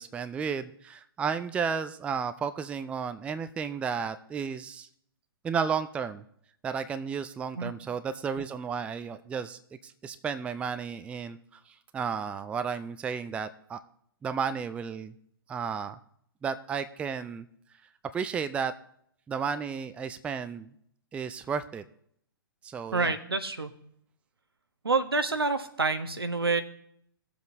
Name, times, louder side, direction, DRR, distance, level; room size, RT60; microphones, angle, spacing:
voice 1, 0.0-4.9 5.4-6.2 6.6-11.4 11.7-13.8 14.2-15.1 15.5-16.0 16.4-17.5 18.1-18.7 19.3-20.7 21.1-21.8 22.6-23.2, right 6 dB, 10° right, 11 dB, 0.4 m, -33 dB
voice 2, 22.9-23.7 24.8-26.6, right 3 dB, 80° right, 9 dB, 1.0 m, -27 dB
18.0 x 7.2 x 2.6 m, 0.69 s
figure-of-eight pair, 115°, 12 cm